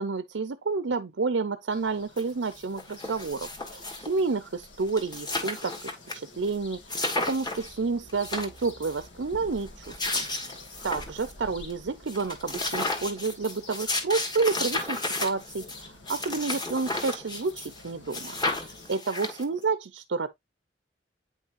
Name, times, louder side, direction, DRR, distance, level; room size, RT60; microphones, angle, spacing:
voice 1, 0.0-5.7 6.1-20.3, right 4 dB, 85° right, 0.6 m, -30 dB
sound 1, 1.7-18.9, left 2 dB, 75° left, 2.1 m, -50 dB
sound 2, 2.2-2.3 2.5-4.2 4.6-4.7 4.9-6.1 6.5-6.6 6.9-7.7 8.1-9.0 9.7-11.3 11.7-11.8 12.1-17.8 18.1-19.6, left 2 dB, 25° left, 1.6 m, -33 dB
8.8 x 5.5 x 2.6 m
head